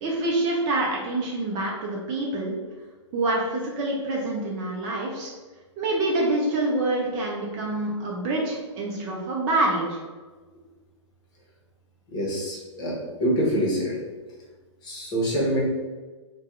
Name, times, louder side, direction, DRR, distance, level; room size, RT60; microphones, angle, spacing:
voice 1, 0.0-2.5 3.1-5.3 5.8-10.0, right 2 dB, 30° right, -2 dB, 0.6 m, -26 dB
voice 2, 12.1-14.0 14.8-15.6, equal, 25° left, -5 dB, 1.1 m, -26 dB
2.7 x 2.3 x 3.7 m, 1.3 s
hypercardioid pair, 120°, 16 cm